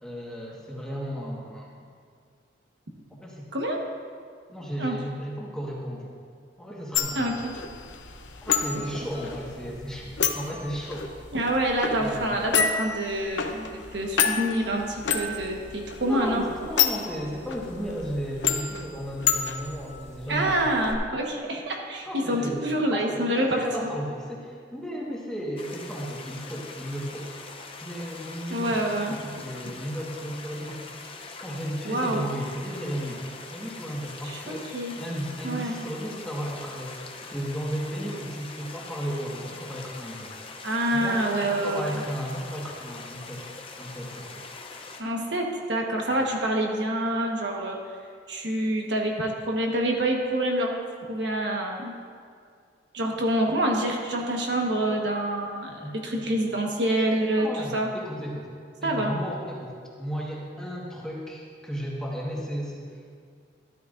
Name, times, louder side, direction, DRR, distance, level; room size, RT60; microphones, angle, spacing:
voice 1, 0.0-1.9 3.2-3.5 4.5-6.1 6.6-7.4 8.4-11.1 12.0-12.4 16.0-20.6 22.0-27.3 27.8-30.8 31.4-37.0 37.3-40.4 40.9-44.5 46.1-46.2 55.8-56.2 57.4-58.5 58.8-62.9, equal, 5° left, -4 dB, 1.5 m, -34 dB
sound 1, 6.9-20.9, left 7 dB, 85° left, 0.8 m, -30 dB
voice 2, 7.1-7.5 8.7-8.8 11.3-16.4 20.3-23.5 23.8-23.9 28.5-29.4 31.8-32.3 34.2-34.9 35.4-35.8 40.6-42.0 45.0-47.8 48.3-50.7 51.1-51.9 52.9-57.5 57.7-57.9 58.8-59.1, right 1 dB, 70° right, 0 dB, 1.3 m, -27 dB
sound 2, 25.6-45.0, left 4 dB, 30° left, 0.7 m, -43 dB
12.5 x 12.5 x 2.6 m, 2.2 s
head